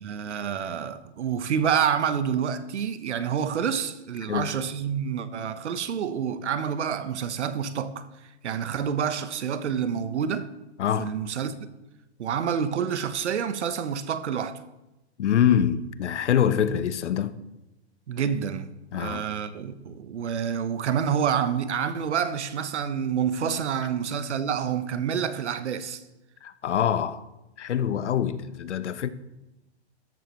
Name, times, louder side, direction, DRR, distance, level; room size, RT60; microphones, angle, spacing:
voice 1, 0.0-8.1 8.4-10.5 11.0-11.5 12.2-14.6 18.1-26.0, right 7 dB, 85° right, 1.2 m, -28 dB
voice 2, 10.8-11.1 15.2-17.4 18.9-19.3 26.4-27.2 27.6-29.1, left 9 dB, 90° left, 1.0 m, -25 dB
13.5 x 12.5 x 3.1 m
hypercardioid pair, 175°, 34 cm